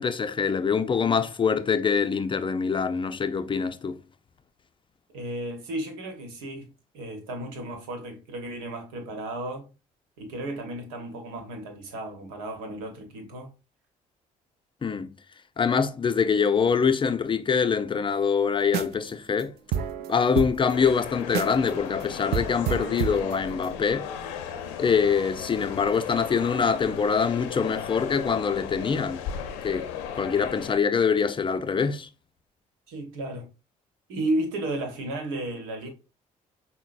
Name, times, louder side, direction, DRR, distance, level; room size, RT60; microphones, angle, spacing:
voice 1, 0.0-4.0 14.8-15.1 15.6-19.5 20.1-24.1 24.8-29.2 29.6-29.9 30.2-32.1, left 6 dB, 30° left, 0.4 m, -24 dB
voice 2, 5.1-9.7 10.2-13.5 32.9-33.5 34.1-35.9, right 1 dB, 80° right, 1.0 m, -33 dB
sound 1, 18.6-19.1 19.4-19.5 19.7-21.7 22.0-22.1 22.3-23.8, right 8 dB, 65° right, 0.4 m, -30 dB
sound 2, 20.7-30.8, left 8 dB, 80° left, 0.5 m, -36 dB
5.6 x 2.0 x 2.5 m
hypercardioid pair, 55°, 18 cm